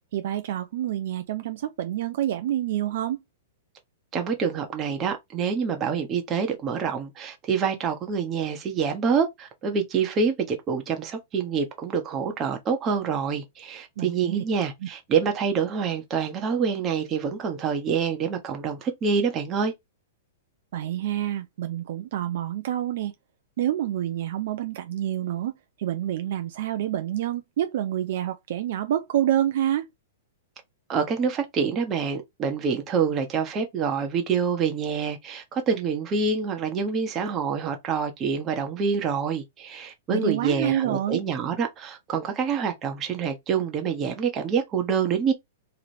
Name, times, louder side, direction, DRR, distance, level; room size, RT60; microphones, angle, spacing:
voice 1, 0.1-3.2 14.0-14.4 14.8-14.9 20.7-23.1 23.6-25.5 25.8-29.9 40.1-41.2, right 12 dB, 65° right, 0.5 m, -27 dB
voice 2, 4.1-19.7 30.9-45.3, right 6 dB, 25° right, 1.1 m, -26 dB
3.2 x 2.5 x 4.3 m
hypercardioid pair, 125°, 0 cm